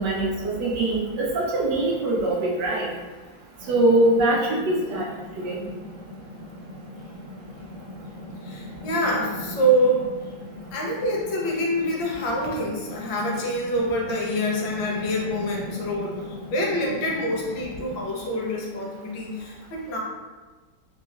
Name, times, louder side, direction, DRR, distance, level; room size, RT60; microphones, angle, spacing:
voice 1, 0.0-2.9 3.7-5.1 5.4-5.6, right 1 dB, 75° right, -4 dB, 1.3 m, -22 dB
sound 1, 3.6-18.0, left 1 dB, 50° right, 1.4 m, -39 dB
voice 2, 8.4-10.1 10.7-16.2 16.5-20.0, equal, 80° left, -2 dB, 1.5 m, -26 dB
4.0 x 2.9 x 2.4 m, 1.3 s
omnidirectional pair, 2.0 m